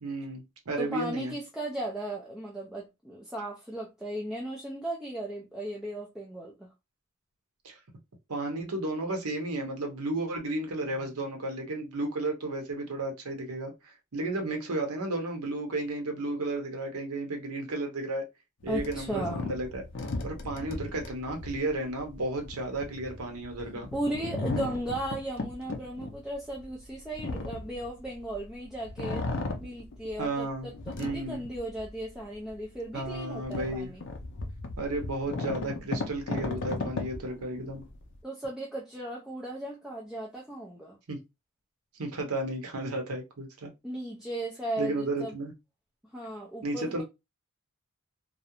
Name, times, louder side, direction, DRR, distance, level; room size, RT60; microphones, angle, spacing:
voice 1, 0.0-1.3 7.6-7.8 8.3-18.2 18.6-19.8 20.2-23.9 30.2-30.7 31.0-31.4 32.9-33.9 34.8-37.8 41.1-41.2 42.0-43.7 44.8-45.5 46.6-47.0, right 2 dB, 85° right, 0.8 m, -33 dB
voice 2, 0.8-6.7 18.7-19.5 23.9-29.3 29.6-34.0 38.2-41.0 43.8-45.4 46.1-47.0, right 1 dB, ahead, 0.3 m, -36 dB
sound 1, 18.6-28.5 28.8-30.3 30.7-32.0 32.5-32.6 33.0-38.1, left 2 dB, 55° left, 0.5 m, -36 dB
2.4 x 2.0 x 2.8 m
head